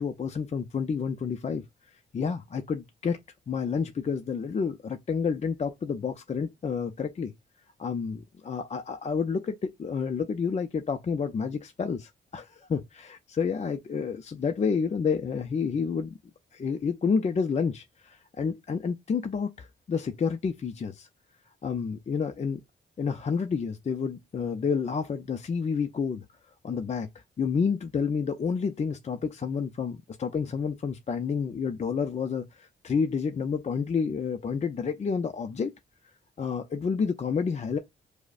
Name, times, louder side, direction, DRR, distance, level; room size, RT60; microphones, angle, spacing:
voice 1, 0.0-1.6 2.1-3.2 3.5-7.3 7.8-16.2 16.5-21.1 21.6-22.6 23.0-26.2 26.6-27.1 27.4-35.7 36.4-37.8, left 6 dB, 35° left, 0.5 m, -29 dB
4.9 x 2.1 x 2.4 m
cardioid pair, 95°, 19 cm